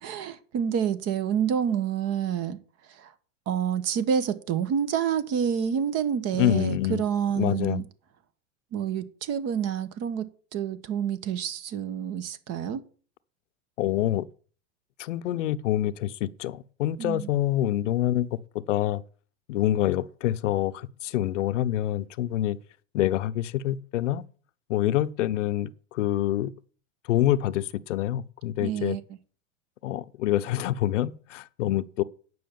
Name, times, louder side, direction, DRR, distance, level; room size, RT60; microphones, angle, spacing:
voice 1, 0.0-2.6 3.0-3.1 3.5-7.8 8.7-12.8 17.0-17.3 28.6-29.0, right 8 dB, 45° right, 1.3 m, -28 dB
voice 2, 6.3-7.0 7.4-7.8 13.8-14.3 15.0-18.3 18.7-19.0 19.5-22.6 22.9-24.2 24.7-26.5 27.1-29.0 29.8-32.0, left 13 dB, 80° left, 0.7 m, -26 dB
9.4 x 6.0 x 7.0 m
hypercardioid pair, 110°, 37 cm